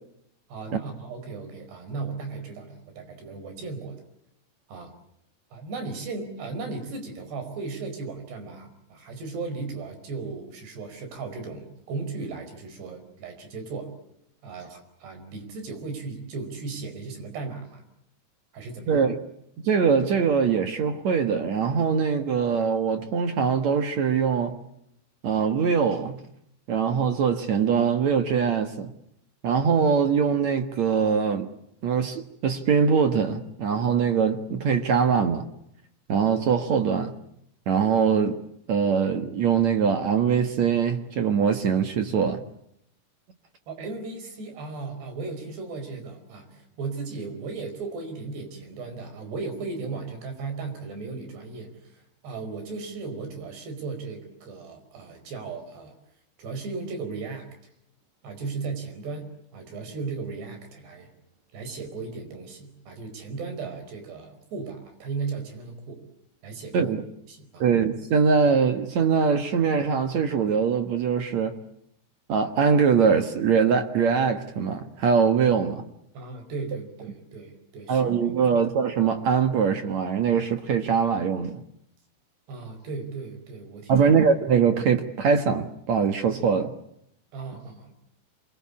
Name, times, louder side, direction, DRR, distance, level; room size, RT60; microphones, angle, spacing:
voice 1, 0.5-4.0 4.7-4.9 5.5-13.9 14.4-17.8 18.5-19.0 43.7-56.0 56.4-57.5 58.2-61.1 61.5-66.0 66.4-66.9 67.3-67.7 76.1-78.1 78.5-78.6 82.5-84.1 87.3-87.9, right 4 dB, 80° right, 7.0 m, -36 dB
voice 2, 18.9-19.2 19.6-24.5 25.2-26.2 26.7-28.9 29.4-31.5 31.8-35.5 36.1-37.1 37.7-38.4 38.7-42.4 66.7-67.0 67.6-71.5 72.3-75.8 77.9-81.6 83.9-86.7, right 6 dB, 55° right, 2.2 m, -22 dB
27.5 x 22.5 x 8.6 m
omnidirectional pair, 4.7 m